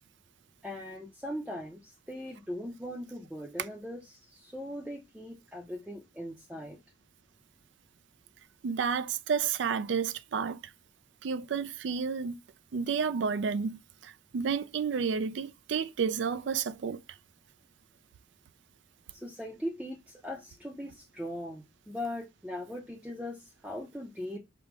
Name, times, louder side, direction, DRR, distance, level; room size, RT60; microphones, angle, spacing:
voice 1, 0.6-6.8 19.1-24.4, left 1 dB, 5° right, 0.6 m, -40 dB
voice 2, 8.6-10.6 11.2-12.4 12.7-17.0, right 6 dB, 70° right, 0.4 m, -31 dB
5.1 x 2.1 x 4.6 m
head